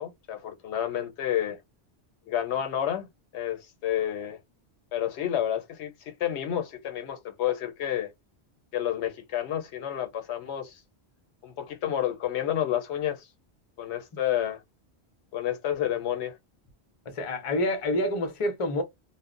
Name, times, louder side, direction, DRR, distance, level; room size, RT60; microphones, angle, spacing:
voice 1, 0.0-1.6 2.3-3.1 3.3-4.4 4.9-8.1 8.7-10.8 11.4-13.3 13.8-14.6 15.3-16.4, left 11 dB, 85° left, 0.9 m, -30 dB
voice 2, 17.1-18.8, left 1 dB, 40° left, 0.6 m, -27 dB
2.0 x 2.0 x 3.5 m
omnidirectional pair, 1.1 m